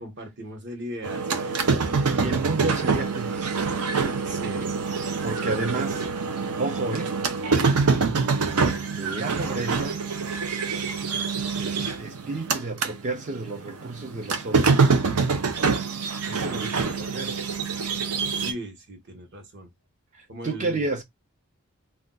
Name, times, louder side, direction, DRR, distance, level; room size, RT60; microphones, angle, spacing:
voice 1, 0.0-1.7 4.2-4.7 13.8-14.0 18.3-19.7 20.3-20.8, equal, 50° right, 1.0 m, -38 dB
sound 1, 1.0-13.0 13.3-18.5, right 4 dB, 75° right, 0.6 m, -25 dB
voice 2, 2.1-3.6 5.2-6.0 6.6-7.2 8.9-10.0 11.5-15.0 16.3-17.6 20.1-21.0, right 3 dB, 35° right, 0.4 m, -31 dB
2.4 x 2.2 x 3.8 m
head